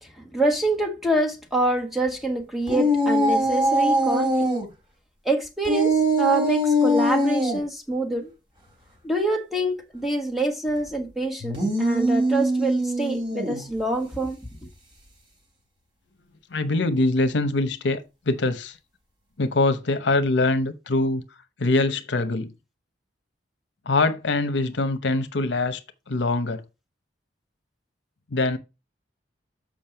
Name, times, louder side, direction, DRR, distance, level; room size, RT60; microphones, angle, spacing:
voice 1, 0.0-4.5 5.2-8.3 9.0-14.4, right 2 dB, ahead, 1.4 m, -26 dB
sound 1, 2.7-4.6 5.6-7.6 11.4-13.6, equal, 25° right, 3.1 m, -22 dB
voice 2, 16.5-18.8 19.4-21.2 21.6-22.5 23.9-25.8 26.1-26.6 28.3-28.6, left 2 dB, 70° left, 0.8 m, -23 dB
7.3 x 5.3 x 4.4 m
head